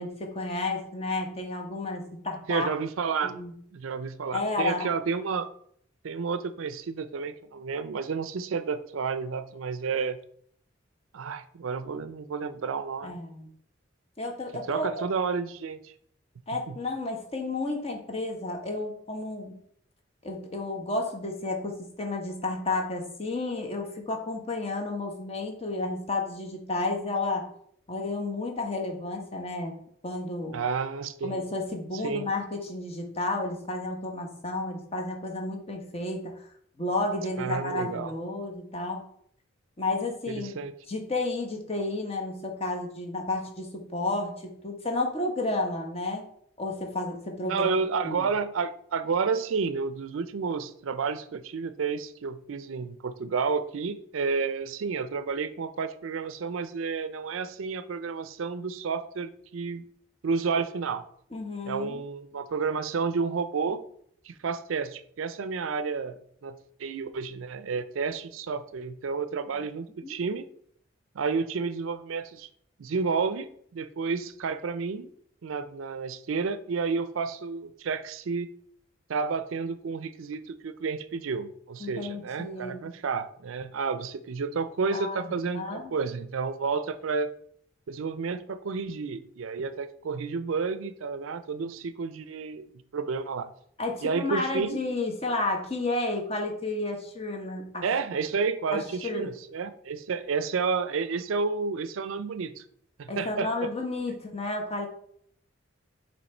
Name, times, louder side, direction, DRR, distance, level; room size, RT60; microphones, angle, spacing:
voice 1, 0.0-2.7 3.2-3.5 4.3-4.9 13.0-13.5 14.2-15.0 16.5-19.6 20.2-27.5 27.9-29.7 30.0-30.6 31.2-36.4 36.8-39.1 39.8-40.6 40.9-46.2 46.6-47.7 48.0-48.3 61.3-62.0 70.0-70.1 81.8-82.9 84.9-85.9 93.8-97.9 98.7-99.3 103.1-104.9, left 2 dB, 30° left, 2 dB, 1.0 m, -32 dB
voice 2, 2.5-3.4 3.7-5.5 6.0-10.2 11.1-13.2 14.7-15.9 16.5-16.8 30.5-31.4 32.0-32.3 37.4-38.1 40.3-40.7 47.5-59.8 60.2-61.0 61.6-63.8 64.3-66.5 66.8-70.5 71.1-72.5 72.8-75.1 75.4-78.5 79.1-87.3 87.9-92.7 92.9-93.5 94.0-94.8 97.8-102.6 103.0-103.7, right 5 dB, 85° right, 12 dB, 0.5 m, -31 dB
7.1 x 3.0 x 4.3 m, 0.65 s
head